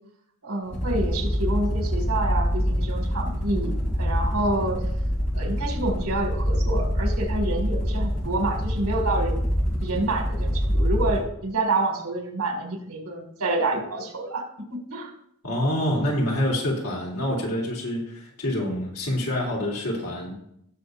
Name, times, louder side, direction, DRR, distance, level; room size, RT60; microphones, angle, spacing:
voice 1, 0.4-4.8 5.3-9.4 9.8-14.4 14.7-15.1, right 2 dB, 90° right, 3 dB, 2.2 m, -28 dB
sound 1, 0.6-11.3, equal, 35° left, 2.8 m, -25 dB
voice 2, 15.4-20.3, left 1 dB, 85° left, -2 dB, 3.1 m, -26 dB
17.5 x 6.4 x 2.7 m, 0.74 s
head